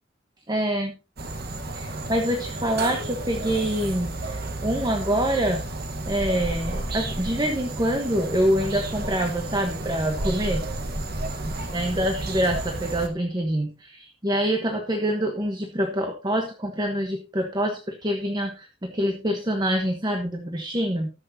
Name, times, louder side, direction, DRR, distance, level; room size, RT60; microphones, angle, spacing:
voice 1, 0.5-0.9 1.7-5.6 6.1-10.6 11.7-21.1, equal, 20° right, 3 dB, 1.2 m, -26 dB
sound 1, 1.2-13.1, right 2 dB, 50° right, 1.4 m, -32 dB
19.0 x 6.5 x 2.8 m, 0.30 s
head